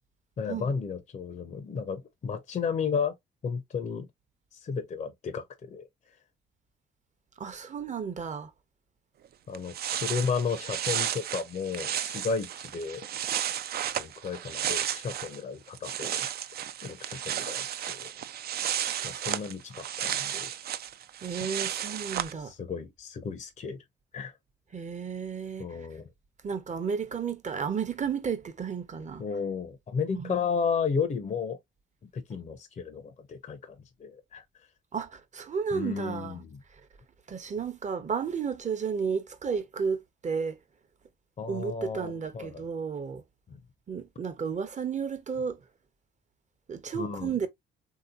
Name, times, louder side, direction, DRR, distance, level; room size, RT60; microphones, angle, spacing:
voice 1, 0.4-3.1 3.4-4.1 4.5-5.9 9.5-9.7 10.0-13.1 14.0-16.3 16.8-18.1 19.0-20.5 22.4-23.8 24.1-24.3 25.6-26.1 29.2-31.6 32.1-34.4 35.7-36.6 41.4-42.6 46.9-47.3, left 5 dB, 35° left, 0.6 m, -33 dB
voice 2, 7.4-8.5 21.2-22.5 24.7-25.9 26.4-29.2 30.1-30.4 34.9-36.4 36.7-36.8 37.3-40.6 41.5-43.2 43.9-45.6 46.7-47.5, right 6 dB, 35° right, 0.8 m, -33 dB
sound 1, 9.3-9.4 9.5-15.4 15.7-22.3, right 10 dB, 50° right, 0.4 m, -33 dB
3.4 x 2.8 x 2.3 m
cardioid pair, 90°, 20 cm